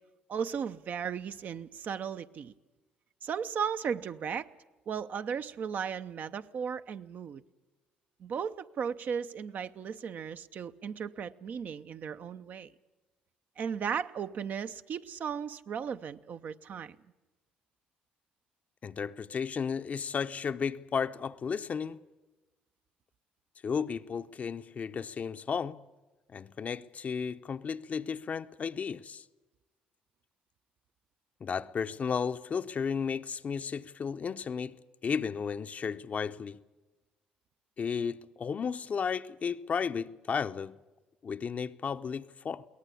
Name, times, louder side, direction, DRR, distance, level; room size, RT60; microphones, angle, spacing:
voice 1, 0.3-2.5 3.2-4.5 4.9-7.4 8.2-12.7 13.6-17.0, right 7 dB, 55° right, 0.7 m, -36 dB
voice 2, 18.8-22.0 23.6-25.8 26.3-29.2 31.4-34.8 35.0-36.6 37.8-40.8 41.2-42.7, left 6 dB, 45° left, 0.7 m, -34 dB
22.5 x 18.0 x 8.4 m
supercardioid pair, 65°, 3 cm